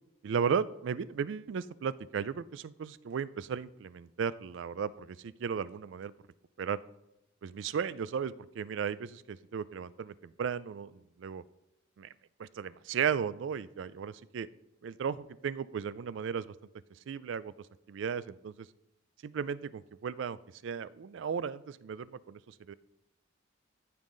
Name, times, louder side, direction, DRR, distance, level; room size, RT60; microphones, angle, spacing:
voice 1, 0.2-6.1 6.6-6.8 7.4-11.4 12.0-12.1 12.4-14.5 14.8-16.5 17.1-17.5 17.9-18.5 19.2-20.4 20.6-22.7, right 7 dB, 65° right, 18 dB, 0.3 m, -35 dB
14.0 x 5.5 x 3.9 m, 0.87 s
head